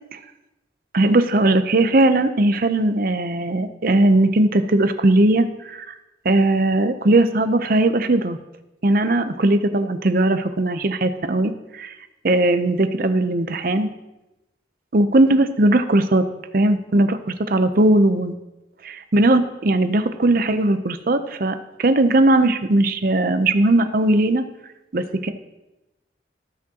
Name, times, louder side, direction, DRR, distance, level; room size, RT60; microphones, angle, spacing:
voice 1, 0.9-5.9 6.2-8.4 8.8-11.9 12.2-13.9 14.9-16.3 16.5-18.3 18.8-24.4 24.9-25.3, right 2 dB, 50° right, 10 dB, 0.6 m, -18 dB
17.5 x 6.1 x 2.9 m, 0.97 s
head